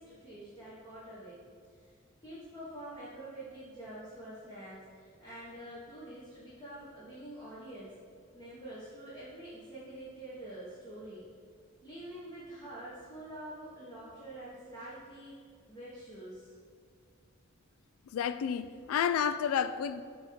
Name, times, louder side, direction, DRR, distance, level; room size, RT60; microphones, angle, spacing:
voice 1, 0.0-1.4 1.7-1.9 2.2-8.0 8.3-11.2 11.8-15.4 15.7-16.5, right 1 dB, 20° left, 1.2 m, -46 dB
voice 2, 18.1-20.0, left 8 dB, 85° left, 0.3 m, -30 dB
7.6 x 3.5 x 4.6 m
head